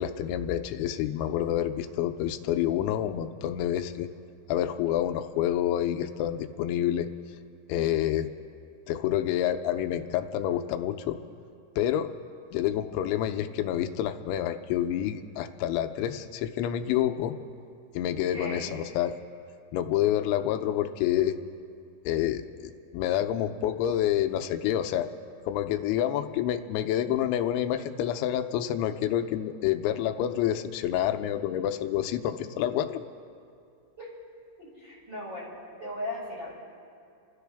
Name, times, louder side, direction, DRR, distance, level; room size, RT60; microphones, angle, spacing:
voice 1, 0.0-4.1 4.5-7.1 7.7-8.3 8.9-11.2 11.8-12.1 12.5-17.3 17.9-19.2 19.7-21.4 22.1-25.1 25.5-33.0, left 11 dB, 90° left, 7 dB, 3.0 m, -28 dB
voice 2, 18.2-18.8 34.0-34.1 34.6-35.5 35.8-36.6, left 1 dB, 25° right, -6 dB, 5.2 m, -37 dB
30.0 x 13.5 x 3.4 m, 2.4 s
omnidirectional pair, 5.3 m